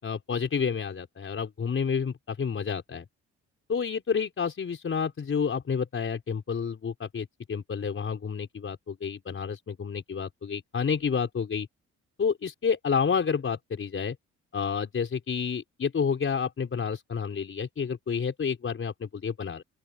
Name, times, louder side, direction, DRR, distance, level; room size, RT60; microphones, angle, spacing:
voice 1, 0.0-3.0 3.7-11.7 12.2-14.2 14.5-19.6, left 6 dB, 45° left, 4.9 m, -29 dB
open air
cardioid pair, 90°, 30 cm